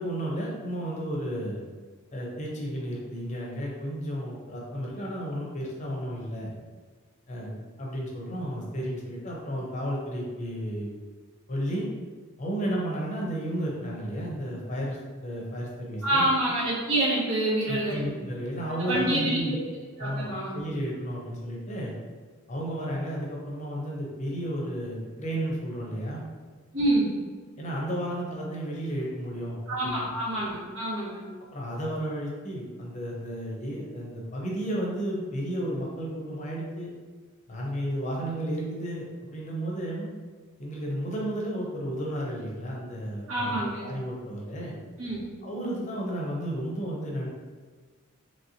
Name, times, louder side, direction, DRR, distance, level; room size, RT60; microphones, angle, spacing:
voice 1, 0.0-1.6 2.1-6.5 7.3-7.5 7.8-10.9 11.5-11.9 12.4-16.3 17.7-19.6 20.0-21.9 22.5-26.3 27.6-30.1 31.5-36.9 37.5-40.1 40.6-43.6 43.8-44.8 45.4-47.3, equal, 35° left, -3 dB, 0.6 m, -33 dB
voice 2, 16.0-18.1 18.9-19.5 20.0-20.6 26.7-27.1 29.7-31.3 43.3-43.8 45.0-45.2, right 1 dB, 60° right, -6 dB, 0.7 m, -27 dB
3.0 x 2.8 x 2.7 m, 1.5 s
head